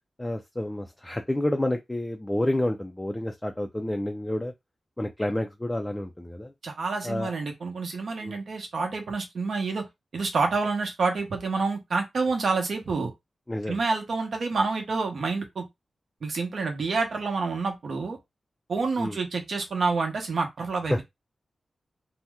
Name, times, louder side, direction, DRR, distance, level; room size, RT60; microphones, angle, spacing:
voice 1, 0.2-4.5 5.0-6.5 7.0-7.3 8.2-8.4 13.5-13.8 19.0-19.1 20.9-21.0, left 1 dB, 10° left, 0.3 m, -29 dB
voice 2, 6.6-9.8 10.1-13.1 13.7-15.7 16.2-18.2 18.7-21.0, right 4 dB, 65° right, 0.9 m, -28 dB
2.8 x 2.0 x 3.4 m
wide cardioid pair, 135°, 0 cm